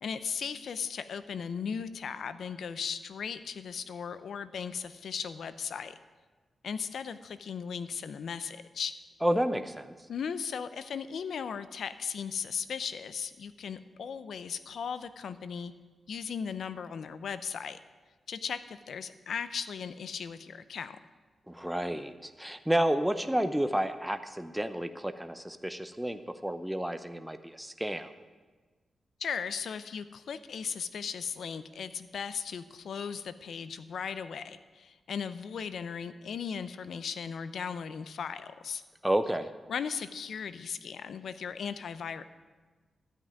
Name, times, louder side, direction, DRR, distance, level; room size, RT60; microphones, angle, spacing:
voice 1, 0.0-6.0 6.6-8.9 10.1-15.7 16.1-17.8 18.3-21.0 29.2-38.8 39.7-42.2, left 6 dB, 75° left, 13 dB, 0.6 m, -37 dB
voice 2, 9.2-9.9 21.5-28.1 39.0-39.5, right 1 dB, 5° right, 9 dB, 0.7 m, -30 dB
12.5 x 6.0 x 9.4 m, 1.3 s
cardioid pair, 80°, 0 cm